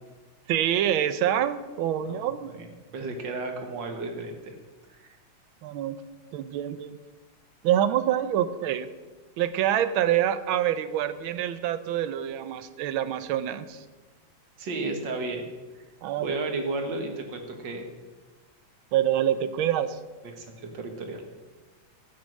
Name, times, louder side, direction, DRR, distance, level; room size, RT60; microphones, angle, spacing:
voice 1, 0.5-2.5 5.6-6.0 6.3-7.0 7.6-8.9 9.4-13.8 16.0-16.4 18.9-20.0, right 11 dB, 85° right, 13 dB, 1.5 m, -26 dB
voice 2, 2.5-4.5 4.9-5.1 14.6-15.4 16.2-17.9 20.2-21.2, right 2 dB, 65° right, 4 dB, 2.2 m, -33 dB
12.0 x 8.4 x 6.5 m, 1.2 s
omnidirectional pair, 2.2 m